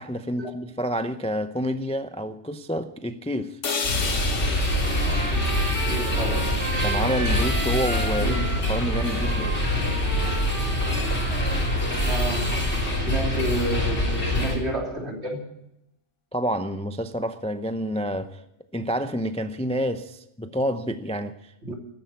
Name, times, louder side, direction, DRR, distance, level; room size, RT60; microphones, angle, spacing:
voice 1, 0.0-3.6 6.8-8.4 8.7-9.5 16.3-18.4 18.7-21.7, equal, 10° left, 0.4 m, -28 dB
sound 1, 3.6-7.7, left 5 dB, 85° left, 1.7 m, -34 dB
sound 2, 3.8-14.6, left 1 dB, 65° left, 4.0 m, -25 dB
Trumpet, 4.8-12.5, right 2 dB, 45° right, 1.8 m, -35 dB
voice 2, 5.7-6.5 8.2-8.4 12.0-12.7 13.0-15.4 21.6-21.7, right 1 dB, 65° right, 3.5 m, -30 dB
13.5 x 10.0 x 8.4 m
omnidirectional pair, 1.2 m